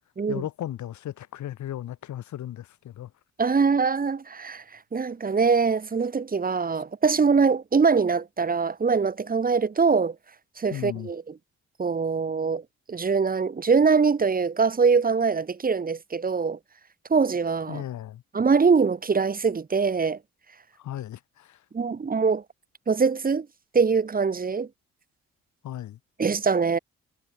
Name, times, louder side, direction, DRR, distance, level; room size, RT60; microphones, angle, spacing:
voice 1, 0.3-3.1 10.7-11.1 17.7-18.2 20.8-21.6 25.6-26.0, left 12 dB, 70° left, 2.7 m, -36 dB
voice 2, 3.4-4.6 4.9-10.1 10.6-11.2 11.8-12.6 12.9-16.6 17.1-17.8 18.3-20.2 21.7-22.4 22.9-23.5 23.7-24.7 26.2-26.8, right 5 dB, 30° right, 1.5 m, -23 dB
cardioid pair, 90°, 30 cm